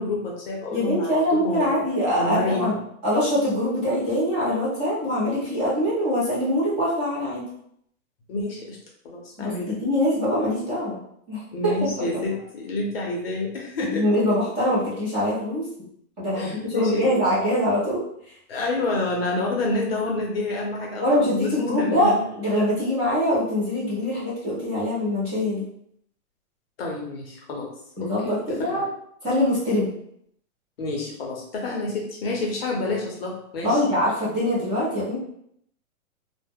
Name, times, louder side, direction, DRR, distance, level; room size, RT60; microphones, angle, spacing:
voice 1, 0.0-1.1 1.4-1.8 2.1-2.8 8.3-8.8 9.0-9.8 11.5-14.0 16.4-17.0 18.5-22.2 26.8-27.7 28.0-28.3 28.7-28.8 30.8-33.8, left 2 dB, 45° left, -2 dB, 0.6 m, -28 dB
voice 2, 0.7-2.8 3.0-7.4 9.4-11.0 11.3-11.7 13.8-15.7 16.2-18.0 21.0-25.7 28.0-28.9 29.2-29.9 33.6-35.2, left 1 dB, 15° right, -11 dB, 0.7 m, -23 dB
2.2 x 2.1 x 3.4 m, 0.71 s
hypercardioid pair, 165°, 43 cm